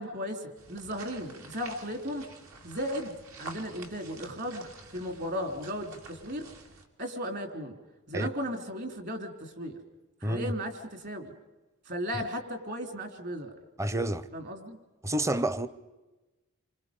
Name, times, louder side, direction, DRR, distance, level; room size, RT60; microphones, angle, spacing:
voice 1, 0.0-2.3 2.6-6.5 7.0-7.8 8.1-9.8 10.2-11.3 11.9-13.5 14.3-14.8, equal, 50° right, 3.5 m, -36 dB
sound 1, 0.6-6.9, right 3 dB, 75° right, 2.8 m, -48 dB
voice 2, 13.8-14.3 15.0-15.7, right 1 dB, 15° right, 0.7 m, -29 dB
28.0 x 25.0 x 5.3 m
head